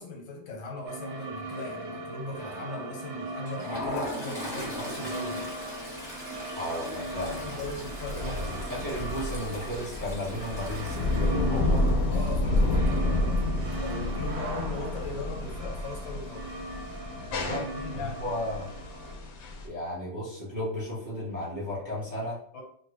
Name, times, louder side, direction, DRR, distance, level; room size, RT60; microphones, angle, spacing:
voice 1, 0.0-5.5 7.4-8.6 12.1-13.4 13.8-16.5 17.3-18.2 22.5-22.6, left 3 dB, 85° left, 1 dB, 1.6 m, -38 dB
sound 1, 0.9-19.1, right 2 dB, 75° right, 1.2 m, -39 dB
Toilet flush, 3.3-14.0 14.3-14.6 14.9-15.0 16.0-16.5, left 1 dB, 25° left, 0.5 m, -40 dB
sound 2, 4.4-19.7, left 2 dB, 70° left, 0.8 m, -30 dB
voice 2, 6.5-7.9 8.2-8.3 8.7-11.9 17.3-18.7 19.6-22.4, left 1 dB, 15° right, -6 dB, 0.6 m, -34 dB
3.2 x 2.2 x 3.1 m, 0.62 s
omnidirectional pair, 2.1 m